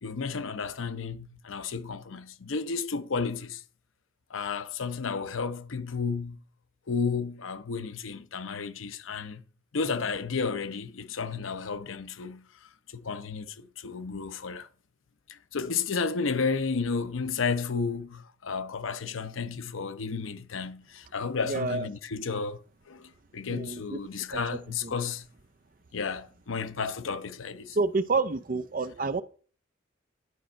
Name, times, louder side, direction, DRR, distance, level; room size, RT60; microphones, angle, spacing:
voice 1, 0.0-3.6 4.3-6.4 6.9-9.4 9.7-14.7 15.3-22.6 22.9-25.3 25.9-27.8, left 5 dB, 85° left, 0.7 m, -32 dB
voice 2, 21.5-21.9 23.5-24.0 24.8-24.9 27.7-29.2, right 3 dB, 45° right, 0.5 m, -28 dB
11.5 x 4.4 x 5.1 m
head